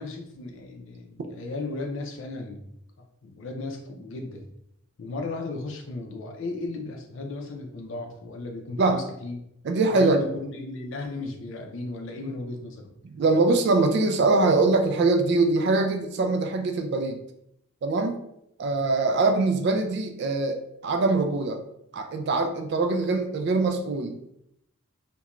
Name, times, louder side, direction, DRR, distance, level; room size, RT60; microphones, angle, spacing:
voice 1, 0.0-2.6 3.0-4.5 5.0-9.4 9.9-12.9, left 3 dB, 60° left, 2 dB, 0.5 m, -35 dB
voice 2, 9.6-10.2 13.0-17.2 17.8-18.2 18.6-21.6 21.9-24.3, right 3 dB, 50° right, 5 dB, 0.3 m, -23 dB
2.4 x 2.2 x 2.9 m, 0.76 s
head